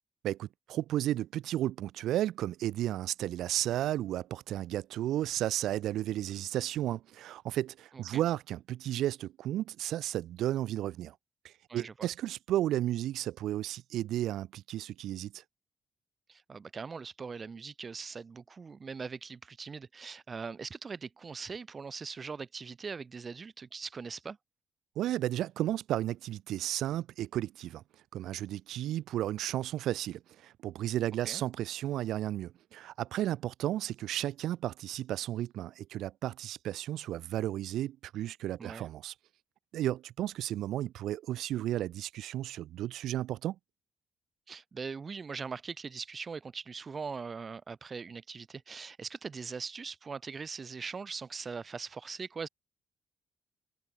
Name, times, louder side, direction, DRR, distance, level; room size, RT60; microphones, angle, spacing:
voice 1, 0.2-11.2 11.4-15.4 25.0-27.8 28.1-39.1 39.7-43.6, right 13 dB, 80° right, 0.3 m, -33 dB
voice 2, 16.3-24.4 31.2-31.4 38.6-38.9 44.5-52.5, right 5 dB, 35° right, 1.2 m, -41 dB
cardioid pair, 90°, 0 cm